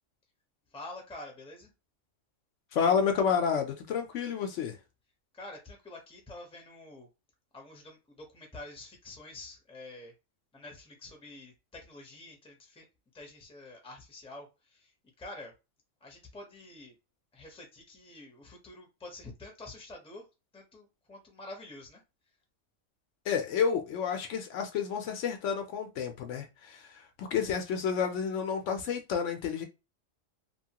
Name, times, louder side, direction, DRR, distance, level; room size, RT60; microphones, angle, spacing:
voice 1, 0.7-1.7 5.3-7.1 7.5-10.1 10.5-12.9 13.1-15.5 16.0-16.9 17.3-20.3 20.5-22.0, left 2 dB, 5° left, 0.6 m, -47 dB
voice 2, 2.7-4.8 23.3-29.6, left 7 dB, 70° left, 0.9 m, -30 dB
2.9 x 2.2 x 2.8 m
omnidirectional pair, 1.3 m